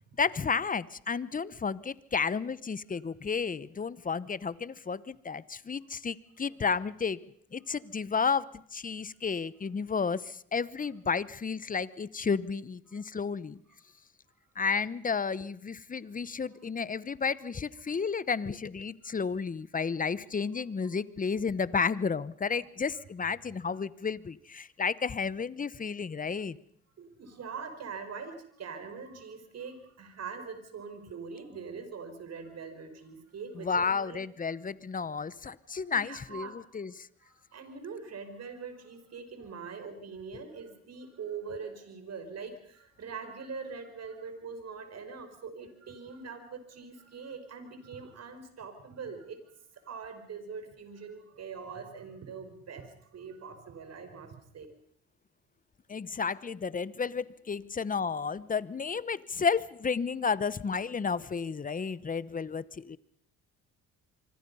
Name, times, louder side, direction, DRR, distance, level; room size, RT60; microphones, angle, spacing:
voice 1, 0.2-7.2 7.5-13.6 14.6-26.6 33.6-37.1 55.9-63.0, left 5 dB, 25° left, 18 dB, 1.0 m, -32 dB
voice 2, 27.0-34.2 35.8-36.6 37.2-49.4 49.7-54.7, right 5 dB, 55° right, 8 dB, 5.3 m, -43 dB
25.0 x 25.0 x 5.6 m, 0.62 s
cardioid pair, 90°, 30 cm